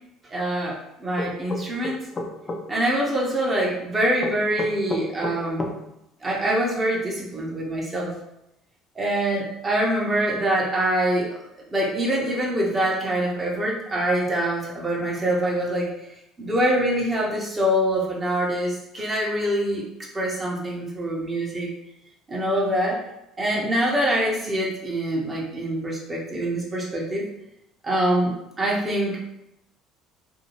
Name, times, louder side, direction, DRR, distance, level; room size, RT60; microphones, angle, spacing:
voice 1, 0.3-2.1 2.7-5.7 6.2-8.1 9.0-15.9 16.4-19.8 20.1-21.7 22.3-23.0 23.4-27.2 27.8-29.2, right 1 dB, 25° right, -3 dB, 0.8 m, -24 dB
sound 1, 1.2-2.6 4.2-5.8, left 2 dB, 25° left, 0.4 m, -30 dB
2.6 x 2.3 x 3.0 m, 0.85 s
supercardioid pair, 95°, 0 cm